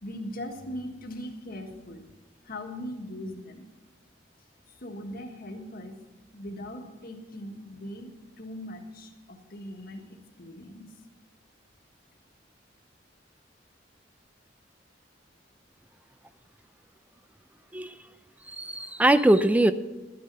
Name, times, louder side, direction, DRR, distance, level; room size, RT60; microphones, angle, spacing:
voice 1, 0.0-2.0 2.4-3.6 4.7-6.0 6.3-10.9, left 1 dB, 55° left, 3 dB, 1.7 m, -40 dB
voice 2, 18.5-19.7, right 1 dB, 10° right, 12 dB, 0.5 m, -21 dB
12.5 x 9.9 x 5.5 m, 1.1 s
head